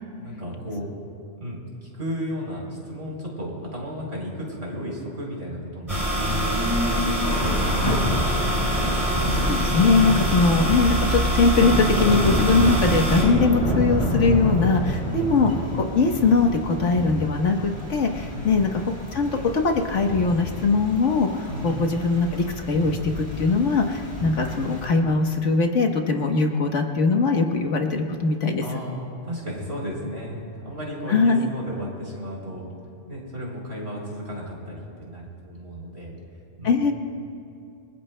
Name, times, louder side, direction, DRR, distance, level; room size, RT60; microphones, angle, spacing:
voice 1, 0.2-0.9 1.4-6.0 6.8-7.8 14.9-15.3 18.3-18.5 21.4-21.8 28.6-32.7 33.1-36.2 36.6-36.9, equal, 55° right, -2 dB, 3.9 m, -34 dB
sound 1, 5.9-13.2, equal, 25° right, 4.2 m, -24 dB
Thunder / Rain, 7.2-24.9, equal, 30° left, 4.9 m, -29 dB
voice 2, 9.3-28.6 31.1-31.5 36.6-36.9, left 4 dB, 70° left, 3 dB, 1.5 m, -21 dB
27.5 x 22.0 x 2.2 m, 2.4 s
omnidirectional pair, 1.3 m